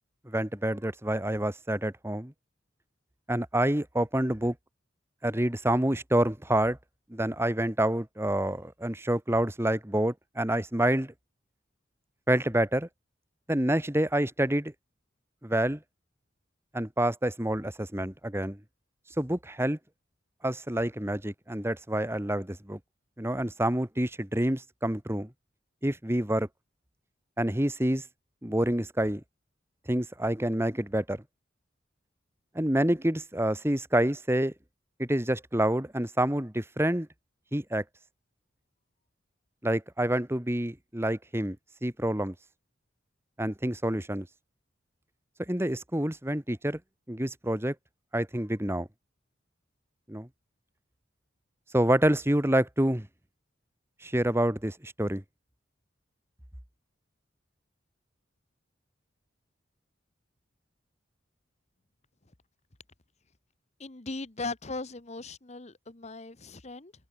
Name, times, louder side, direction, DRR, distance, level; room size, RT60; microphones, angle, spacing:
voice 1, 0.3-2.3 3.3-4.6 5.2-6.8 7.1-11.1 12.3-12.9 13.5-14.7 15.4-15.8 16.7-18.6 19.2-19.8 20.4-22.8 23.2-25.3 25.8-26.5 27.4-28.0 28.4-29.2 29.9-31.2 32.6-34.5 35.0-37.1 37.5-37.8 39.6-41.6 41.8-42.3 43.4-44.3 45.5-46.8 47.1-47.8 48.1-48.9 50.1-50.3 51.7-53.1 54.0-55.2, right 1 dB, 15° right, 1.7 m, -27 dB
voice 2, 63.8-66.9, left 3 dB, 35° left, 1.2 m, -38 dB
head